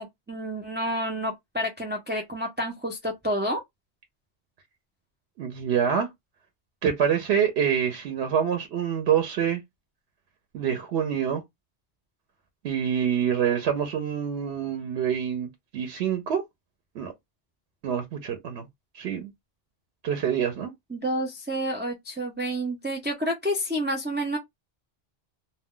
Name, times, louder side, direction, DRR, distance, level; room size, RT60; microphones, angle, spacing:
voice 1, 0.0-3.6 20.9-24.4, equal, 15° right, 0.4 m, -29 dB
voice 2, 5.4-6.1 6.8-9.6 10.5-11.4 12.6-16.4 17.0-17.1 17.8-18.7 18.9-19.3 20.0-20.7, right 8 dB, 90° right, 0.9 m, -26 dB
2.2 x 2.1 x 3.6 m
omnidirectional pair, 1.1 m